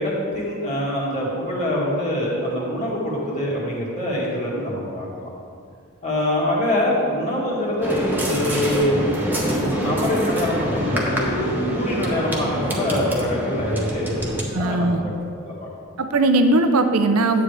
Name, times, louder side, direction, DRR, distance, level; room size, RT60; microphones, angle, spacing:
voice 1, 0.0-5.3 6.0-9.2 9.5-15.1 15.4-15.7, left 1 dB, 35° left, -5 dB, 2.1 m, -24 dB
sound 1, 7.8-14.4, equal, 10° right, 1.1 m, -25 dB
voice 2, 14.5-15.0 16.0-17.4, right 2 dB, 80° right, 7 dB, 0.7 m, -19 dB
10.0 x 8.1 x 3.3 m, 2.2 s
head